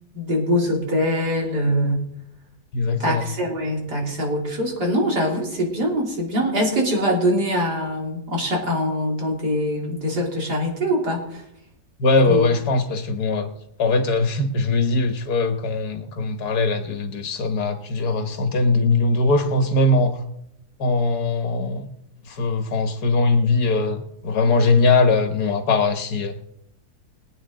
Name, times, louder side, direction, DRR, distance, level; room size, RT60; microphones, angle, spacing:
voice 1, 0.1-2.1 3.0-11.4 12.3-12.5, equal, 85° right, 3.8 m, -23 dB
voice 2, 2.7-3.2 12.0-13.5 13.8-20.2 20.8-21.9 22.3-26.4, left 3 dB, 75° left, 1.8 m, -21 dB
22.0 x 8.9 x 3.8 m
omnidirectional pair, 1.7 m